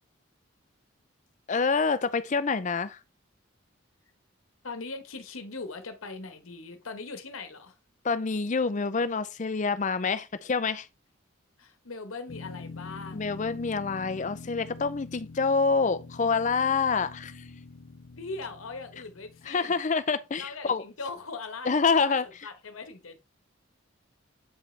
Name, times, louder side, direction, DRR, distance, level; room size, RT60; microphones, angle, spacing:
voice 1, 1.5-3.0 8.0-10.9 13.1-17.4 19.5-20.8 21.7-22.2, left 4 dB, 35° left, 0.5 m, -27 dB
voice 2, 4.6-7.8 11.6-13.2 18.2-19.8 20.4-23.2, left 3 dB, 85° left, 1.1 m, -40 dB
sound 1, 12.3-19.5, left 3 dB, 65° left, 0.8 m, -45 dB
8.1 x 4.9 x 3.2 m
head